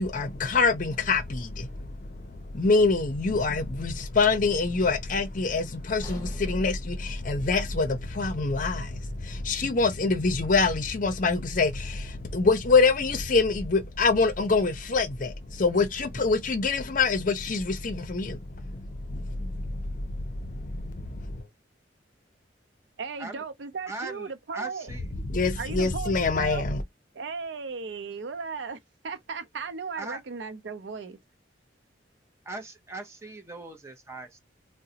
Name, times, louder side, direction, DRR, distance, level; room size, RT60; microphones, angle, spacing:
voice 1, 0.0-21.2 25.2-26.8, left 4 dB, 45° left, 0.6 m, -26 dB
sound 1, 6.0-10.1 10.4-10.6 11.2-11.3, equal, 15° left, 1.0 m, -49 dB
voice 2, 23.0-24.9 25.6-26.7 27.1-31.2, right 5 dB, 75° right, 0.5 m, -36 dB
voice 3, 23.9-25.0 30.0-30.2 32.5-34.4, right 2 dB, 15° right, 0.7 m, -39 dB
3.8 x 2.1 x 2.7 m
head